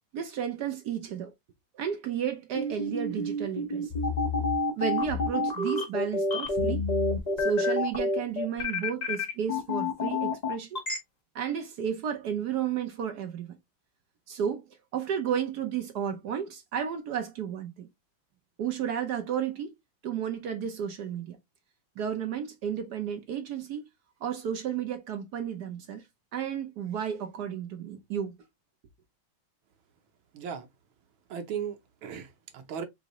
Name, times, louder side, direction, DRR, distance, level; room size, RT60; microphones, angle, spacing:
voice 1, 0.1-1.3 1.7-3.9 4.8-6.8 7.4-10.8 11.3-13.6 14.3-17.9 18.6-19.7 20.0-21.4 22.0-23.9 24.2-26.0 26.3-28.3, right 8 dB, 65° right, 1.2 m, -32 dB
sound 1, 2.5-11.0, left 2 dB, 30° left, 0.8 m, -28 dB
voice 2, 30.3-30.7 31.3-32.8, right 7 dB, 85° right, 1.7 m, -37 dB
4.9 x 2.6 x 2.9 m
omnidirectional pair, 2.1 m